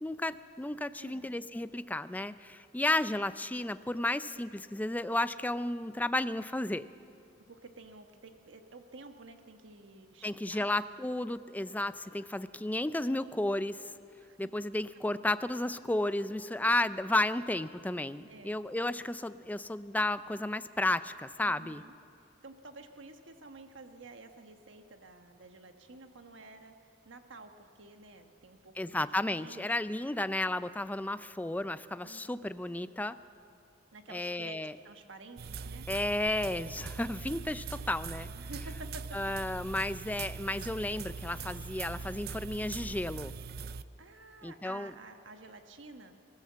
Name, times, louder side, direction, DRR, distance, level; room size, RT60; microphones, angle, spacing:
voice 1, 0.0-6.8 10.2-13.9 14.4-21.8 28.8-33.2 34.1-34.7 35.9-38.3 39.1-43.3 44.4-44.9, left 1 dB, 10° left, 13 dB, 0.4 m, -33 dB
voice 2, 1.0-1.3 7.5-10.7 14.2-14.4 18.3-18.6 21.4-29.1 29.4-29.8 32.0-32.5 33.9-34.6 34.8-35.9 38.3-39.2 44.0-46.2, right 2 dB, 75° right, 6 dB, 1.3 m, -51 dB
sound 1, 35.4-43.8, right 5 dB, 55° right, 0.5 m, -42 dB
25.5 x 14.5 x 7.5 m, 2.4 s
head